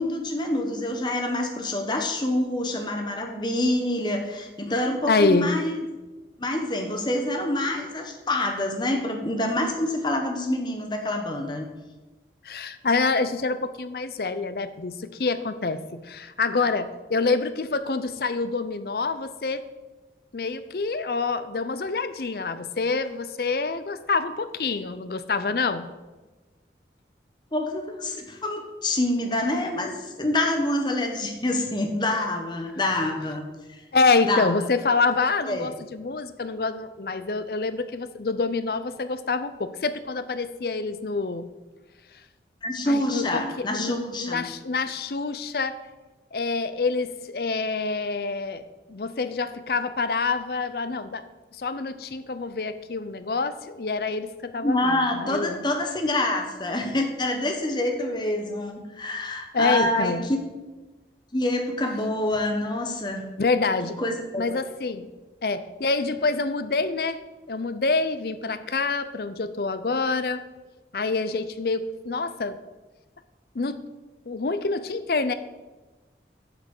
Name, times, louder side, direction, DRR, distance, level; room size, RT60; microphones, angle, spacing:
voice 1, 0.0-5.8 6.4-11.7 27.5-33.4 33.7-33.8 34.2-34.5 35.5-35.7 42.6-44.5 54.6-60.2 61.3-63.2 64.0-64.6, left 1 dB, 25° left, 3 dB, 1.1 m, -26 dB
voice 2, 5.1-5.5 12.4-19.6 20.3-25.9 33.9-41.5 42.9-45.8 46.3-48.6 48.9-51.2 51.6-55.7 59.5-60.2 63.4-64.0 64.4-65.1 65.4-67.2 67.5-70.4 70.9-72.6 73.5-73.8 74.3-75.3, left 4 dB, 60° left, 12 dB, 0.6 m, -26 dB
8.2 x 6.0 x 6.5 m, 1.2 s
head